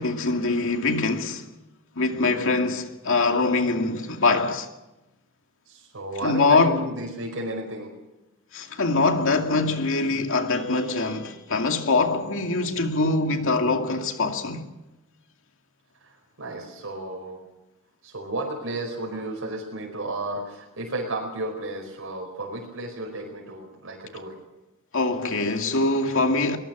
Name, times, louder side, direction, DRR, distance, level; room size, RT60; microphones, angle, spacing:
voice 1, 0.0-1.4 2.0-4.7 6.2-6.9 8.5-14.7 24.9-26.6, left 3 dB, 65° left, 2.4 m, -23 dB
voice 2, 2.1-2.5 5.7-7.9 16.4-17.4 18.0-24.3, right 2 dB, 65° right, 5.0 m, -33 dB
23.5 x 20.5 x 6.2 m
head